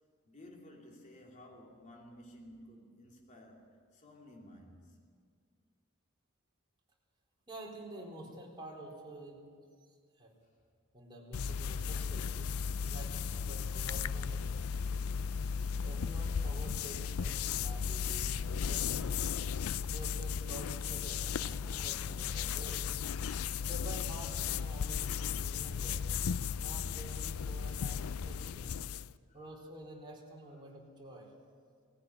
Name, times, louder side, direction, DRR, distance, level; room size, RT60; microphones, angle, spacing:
voice 1, 0.2-5.0 28.4-29.4 30.4-30.7, left 1 dB, 35° left, -1 dB, 2.8 m, -55 dB
voice 2, 7.5-9.4 10.2-10.3 10.9-14.5 15.8-19.1 19.8-22.8 23.7-26.0 26.6-28.8 29.3-31.3, right 1 dB, 25° right, -2 dB, 4.1 m, -49 dB
sound 1, 11.3-29.1, left 6 dB, 90° left, 0.4 m, -35 dB
19.5 x 15.0 x 9.6 m, 2.1 s
head